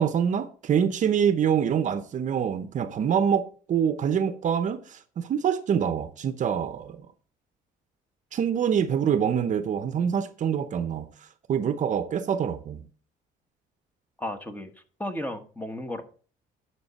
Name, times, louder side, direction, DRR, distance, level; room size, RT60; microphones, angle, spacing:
voice 1, 0.0-7.0 8.3-11.1 11.5-12.8, right 8 dB, 45° right, 0.8 m, -25 dB
voice 2, 14.2-14.7 15.0-16.0, left 1 dB, 10° left, 1.3 m, -33 dB
10.5 x 6.1 x 4.2 m
cardioid pair, 110°, 17 cm